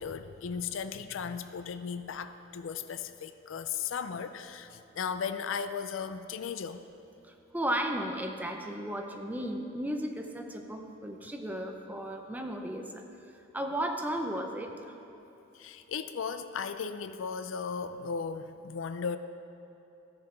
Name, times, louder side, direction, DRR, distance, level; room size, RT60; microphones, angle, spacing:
voice 1, 0.0-6.8 15.5-19.2, left 6 dB, 75° left, 11 dB, 0.4 m, -36 dB
voice 2, 7.5-13.0 13.5-14.9, right 1 dB, 10° right, 4 dB, 0.6 m, -34 dB
14.0 x 6.7 x 4.4 m, 3.0 s
head